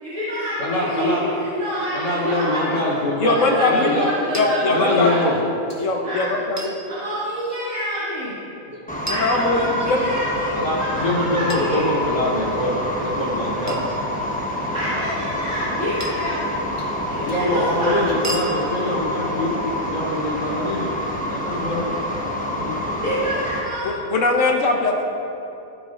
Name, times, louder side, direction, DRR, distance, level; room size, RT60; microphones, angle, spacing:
voice 1, 0.0-2.8 3.2-5.2 6.0-6.3 6.9-8.4 9.1-11.9 14.7-16.6 17.1-18.0 23.0-24.0, left 1 dB, 60° right, -12 dB, 2.3 m, -27 dB
voice 2, 0.6-1.2 1.9-3.3 3.6-4.1 4.7-5.4 5.7-5.8 8.7-8.8 10.5-13.8 17.2-19.6 19.9-20.9 21.4-21.8 22.6-22.7, left 1 dB, 85° left, -13 dB, 3.0 m, -24 dB
voice 3, 3.2-3.9 4.3-5.2 5.8-6.7 9.1-10.1 23.8-25.2, left 3 dB, 60° left, 1 dB, 1.3 m, -21 dB
sound 1, 4.3-4.5 6.6-6.8 9.1-10.0 11.5-12.4 13.7-14.0 16.0-16.4 18.2-18.5, right 1 dB, 15° right, 0.7 m, -33 dB
sound 2, 8.9-23.6, left 1 dB, 5° left, 1.0 m, -27 dB
15.5 x 6.9 x 2.5 m, 2.8 s
omnidirectional pair, 1.5 m